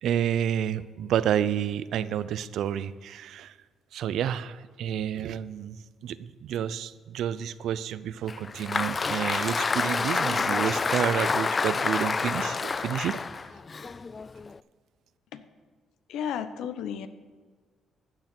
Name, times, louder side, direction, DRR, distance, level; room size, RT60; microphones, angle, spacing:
voice 1, 0.0-3.5 3.9-13.2, right 9 dB, 75° right, 16 dB, 0.5 m, -30 dB
Applause, 8.3-14.6, left 4 dB, 35° left, 0.3 m, -28 dB
voice 2, 16.1-17.1, left 8 dB, 85° left, 12 dB, 0.8 m, -33 dB
14.5 x 6.6 x 6.1 m, 1.5 s
cardioid pair, 90°, 0 cm